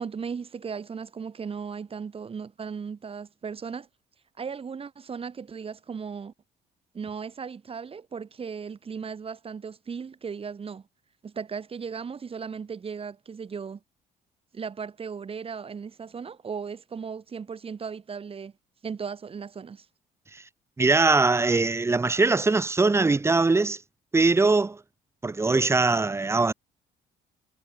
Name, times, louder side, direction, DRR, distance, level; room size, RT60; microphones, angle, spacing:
voice 1, 0.0-3.9 4.4-6.3 6.9-10.8 11.2-13.8 14.5-18.5 18.8-19.8, right 6 dB, 35° right, 6.6 m, -36 dB
voice 2, 20.8-23.8 24.1-24.8 25.2-26.5, right 3 dB, 15° right, 1.1 m, -21 dB
cardioid pair, 110°, 17 cm